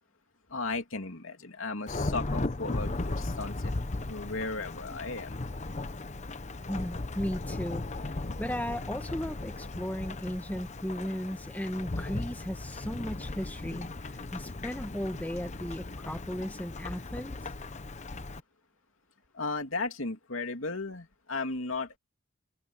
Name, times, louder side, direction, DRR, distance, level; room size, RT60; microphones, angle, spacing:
voice 1, 0.5-3.7 4.1-5.4 19.3-22.0, left 3 dB, 75° left, 2.9 m, -35 dB
Thunderstorm / Rain, 1.9-18.4, left 2 dB, 35° left, 0.9 m, -37 dB
voice 2, 6.7-17.4, equal, 10° left, 1.6 m, -36 dB
head